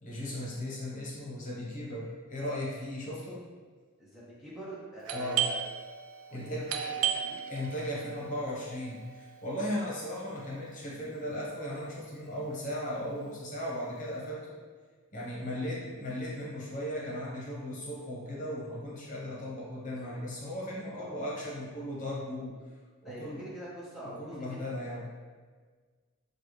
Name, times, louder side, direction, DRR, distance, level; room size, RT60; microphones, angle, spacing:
voice 1, 0.0-3.5 5.1-5.4 6.3-6.7 7.5-14.6 15.1-22.5 23.0-23.5 24.2-25.1, left 1 dB, 35° left, -5 dB, 1.1 m, -37 dB
voice 2, 4.0-5.6 6.3-7.5 15.5-15.7 20.0-20.3 20.9-21.5 23.0-24.8, right 1 dB, ahead, -8 dB, 0.7 m, -45 dB
Doorbell, 5.1-10.5, right 9 dB, 80° right, 0.4 m, -36 dB
6.7 x 2.4 x 3.2 m, 1.5 s
head